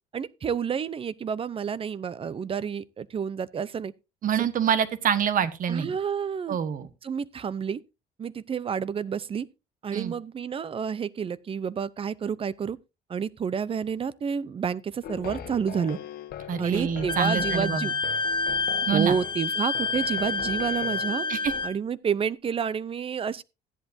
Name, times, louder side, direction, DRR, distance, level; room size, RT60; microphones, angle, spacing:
voice 1, 0.1-3.9 5.7-6.6 7.0-7.8 8.2-9.5 9.8-12.8 13.1-16.0 16.6-17.9 18.9-21.3 21.6-23.4, right 7 dB, 35° right, 0.6 m, -29 dB
voice 2, 4.2-5.9 6.5-6.9 9.9-10.1 16.5-17.9 18.9-19.1 21.3-21.5, right 8 dB, 55° right, 1.4 m, -26 dB
sound 1, 15.0-21.7, left 9 dB, 65° left, 1.3 m, -40 dB
Wind instrument woodwind instrument, 17.1-21.8, left 3 dB, 25° left, 1.2 m, -28 dB
14.5 x 10.5 x 2.7 m
cardioid pair, 110°, 17 cm